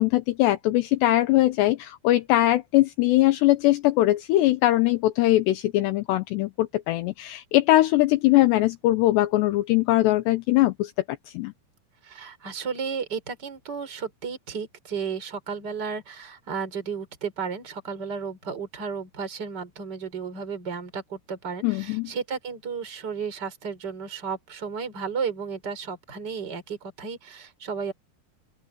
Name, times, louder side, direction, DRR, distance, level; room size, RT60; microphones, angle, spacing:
voice 1, 0.0-10.9 11.3-11.5 21.6-22.1, left 16 dB, 80° left, 3.0 m, -21 dB
voice 2, 12.0-27.9, right 6 dB, 25° right, 4.4 m, -33 dB
open air
omnidirectional pair, 5.1 m